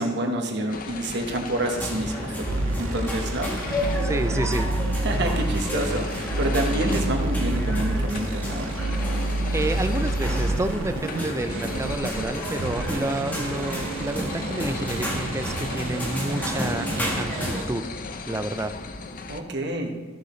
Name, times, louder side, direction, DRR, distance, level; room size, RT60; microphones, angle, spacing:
voice 1, 0.0-2.5 2.7-4.0 5.0-8.7 19.3-19.9, right 1 dB, 60° right, 3 dB, 1.3 m, -28 dB
sound 1, 0.7-19.4, left 3 dB, 45° left, 0.6 m, -37 dB
sound 2, 1.8-17.7, equal, 10° left, 1.4 m, -32 dB
sound 3, 2.5-12.3 12.6-17.6, right 2 dB, 80° right, 0.5 m, -29 dB
voice 2, 4.0-4.7 9.5-17.9 18.3-18.8, right 1 dB, 15° right, 10 dB, 0.4 m, -29 dB
14.0 x 6.8 x 3.2 m, 1.5 s
head